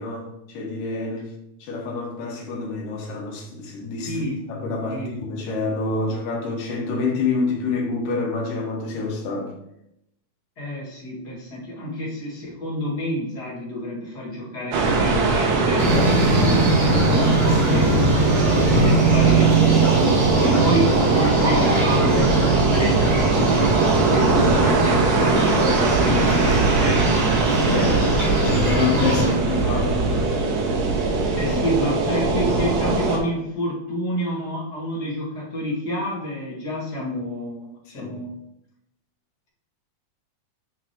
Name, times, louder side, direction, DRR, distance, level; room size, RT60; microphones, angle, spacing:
voice 1, 0.0-1.3 1.6-9.5 16.8-19.1 27.6-29.9 31.5-31.6 37.9-38.2, left 4 dB, 85° left, -1 dB, 2.9 m, -28 dB
voice 2, 4.0-4.4 4.9-5.1 10.6-17.4 17.7-18.1 18.8-19.5 20.3-27.9 29.0-29.5 31.4-38.3, equal, 35° left, -5 dB, 2.2 m, -29 dB
sound 1, 14.7-33.2, right 3 dB, 65° right, 2.1 m, -21 dB
sound 2, 15.8-29.3, right 2 dB, 45° right, 3.0 m, -21 dB
8.6 x 6.2 x 3.0 m, 0.82 s
omnidirectional pair, 3.7 m